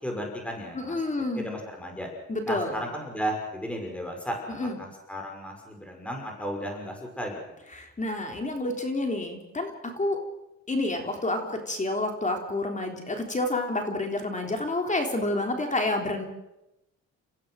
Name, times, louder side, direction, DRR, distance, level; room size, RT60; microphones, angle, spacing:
voice 1, 0.0-1.0 1.3-2.1 2.5-4.4 4.8-7.4, equal, 5° left, 1 dB, 6.1 m, -34 dB
voice 2, 0.7-1.5 2.3-2.8 4.5-4.8 7.7-10.2 10.7-16.3, left 2 dB, 25° left, 4 dB, 3.6 m, -29 dB
29.0 x 15.0 x 6.5 m, 0.92 s
cardioid pair, 90°, 30 cm